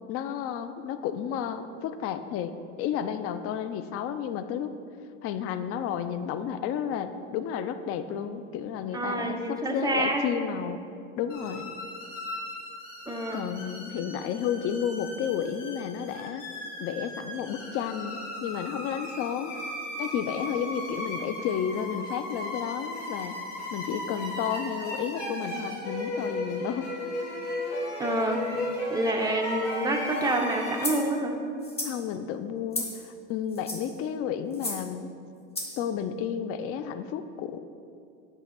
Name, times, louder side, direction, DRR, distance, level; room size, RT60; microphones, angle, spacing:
voice 1, 0.1-4.7 5.2-10.8 11.2-11.7 13.3-16.4 16.8-19.5 20.0-23.4 23.7-26.8 31.8-35.1 35.8-37.6, left 8 dB, 40° left, 10 dB, 0.5 m, -32 dB
voice 2, 8.9-10.3 13.1-13.4 28.0-28.6 28.9-31.4, right 1 dB, 10° right, 1 dB, 0.9 m, -28 dB
sound 1, 11.3-30.9, left 1 dB, 80° left, 1.9 m, -36 dB
sound 2, 30.8-31.1 31.6-32.0 32.7-33.0 33.5-33.9 34.5-34.8 35.5-35.8, left 1 dB, 15° left, 1.5 m, -33 dB
8.5 x 3.6 x 5.9 m, 2.5 s
hypercardioid pair, 100°, 37 cm